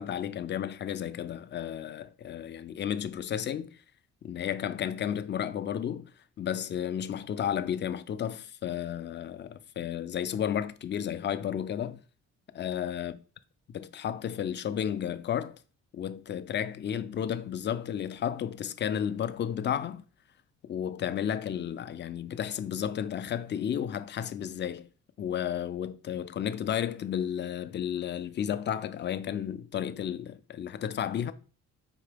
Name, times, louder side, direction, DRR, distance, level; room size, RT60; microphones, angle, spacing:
voice 1, 0.0-3.8 4.2-12.0 12.5-13.1 13.7-15.6 15.9-20.0 20.6-24.9 25.2-31.3, left 9 dB, 40° left, 0.4 m, -32 dB
4.8 x 2.8 x 3.4 m
cardioid pair, 90°, 30 cm